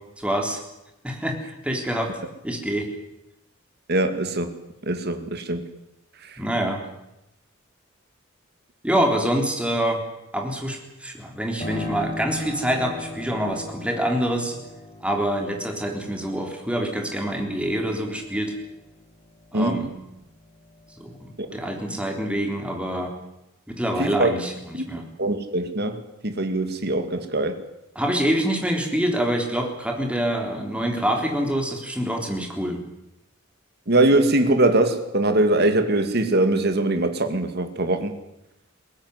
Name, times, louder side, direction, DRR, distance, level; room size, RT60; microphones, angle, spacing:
voice 1, 0.2-0.6 1.0-2.2 2.4-2.9 6.4-6.8 8.8-10.0 10.3-14.5 15.0-18.5 19.5-19.9 21.0-23.1 23.7-25.1 28.0-32.8, right 1 dB, 5° right, 3 dB, 3.6 m, -26 dB
voice 2, 3.9-4.5 4.8-5.6 6.3-6.4 19.5-19.9 21.4-21.5 24.0-24.3 24.7-27.6 33.9-38.2, right 2 dB, 50° right, 8 dB, 2.3 m, -22 dB
Piano, 11.6-20.0 20.4-21.5, left 2 dB, 25° left, 7.5 m, -38 dB
21.5 x 18.0 x 9.7 m, 0.88 s
head